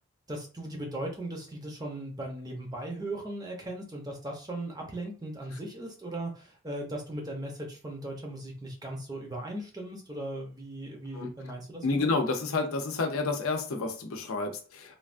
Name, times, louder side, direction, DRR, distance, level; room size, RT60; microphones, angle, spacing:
voice 1, 0.3-12.1, right 1 dB, 20° right, 0 dB, 0.6 m, -38 dB
voice 2, 11.8-15.0, left 3 dB, 85° left, 4 dB, 0.6 m, -30 dB
3.2 x 2.3 x 2.5 m, 0.37 s
head